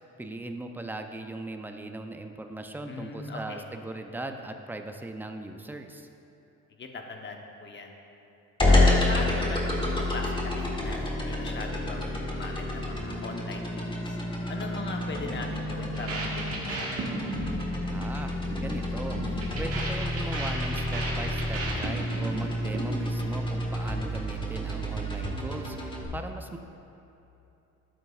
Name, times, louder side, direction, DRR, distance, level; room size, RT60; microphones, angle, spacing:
voice 1, 0.2-6.1 17.9-18.3 18.6-19.2 19.6-26.6, right 2 dB, 5° right, 5 dB, 0.5 m, -39 dB
voice 2, 2.9-3.6 6.8-7.9 8.7-14.2 14.5-16.9, left 3 dB, 40° left, 3 dB, 1.0 m, -39 dB
sound 1, 8.6-26.0, left 1 dB, 15° left, 1.5 m, -29 dB
sound 2, 15.9-23.2, right 2 dB, 50° right, 1.7 m, -36 dB
12.0 x 7.8 x 2.4 m, 2.9 s
cardioid pair, 90°, 30 cm